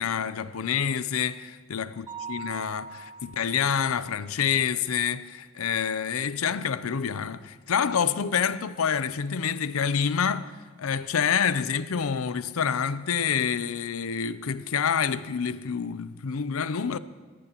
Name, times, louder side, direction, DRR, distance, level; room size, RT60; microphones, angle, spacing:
voice 1, 0.0-17.0, left 7 dB, 85° left, 0.5 m, -27 dB
Mallet percussion, 2.1-3.9, right 5 dB, 15° right, 1.1 m, -40 dB
28.0 x 13.5 x 3.0 m
head